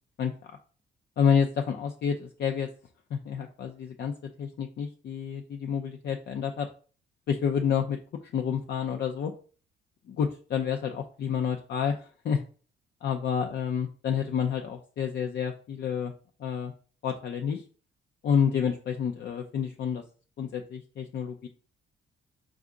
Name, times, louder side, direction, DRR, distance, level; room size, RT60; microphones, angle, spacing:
voice 1, 0.2-0.5 1.2-2.7 3.1-4.1 4.4-6.7 7.3-8.0 8.3-9.3 10.1-12.4 13.0-16.1 16.4-16.7 17.0-17.6 18.2-20.0 20.4-21.5, left 7 dB, 60° left, 3 dB, 0.6 m, -29 dB
4.6 x 2.4 x 3.8 m, 0.39 s
cardioid pair, 90°, 20 cm